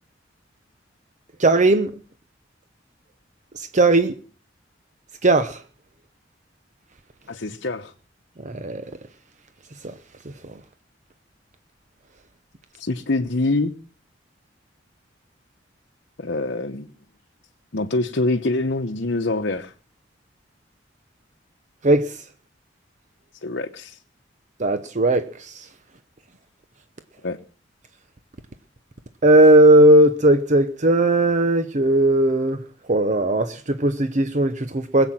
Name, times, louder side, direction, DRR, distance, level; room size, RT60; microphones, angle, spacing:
voice 1, 1.4-1.9 3.5-4.1 5.2-5.6 8.4-8.8 9.8-9.9 21.8-22.2 24.6-25.7 29.2-32.6 32.9-35.1, right 1 dB, 40° right, 0.9 m, -17 dB
voice 2, 7.3-7.9 12.7-13.7 16.2-16.9 17.7-19.7 23.4-24.0 27.2-27.4, left 2 dB, 65° left, 1.0 m, -25 dB
21.0 x 8.2 x 7.4 m
head